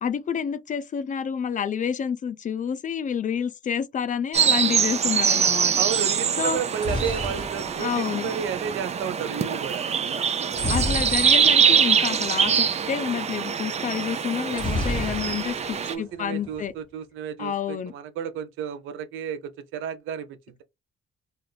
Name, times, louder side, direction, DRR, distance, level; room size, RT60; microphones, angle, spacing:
voice 1, 0.0-5.7 6.4-6.6 7.8-8.3 10.7-16.7 17.4-17.9, left 7 dB, 40° left, 0.4 m, -29 dB
sound 1, 4.3-15.9, right 7 dB, 35° right, 0.4 m, -24 dB
voice 2, 5.8-9.8 15.9-20.6, right 8 dB, 85° right, 0.5 m, -32 dB
sound 2, 6.5-8.6 10.5-11.7 12.0-12.1 12.4-12.6 14.5-15.7 16.0-16.6, left 1 dB, 25° left, 1.2 m, -31 dB
2.4 x 2.4 x 3.2 m
cardioid pair, 90°, 20 cm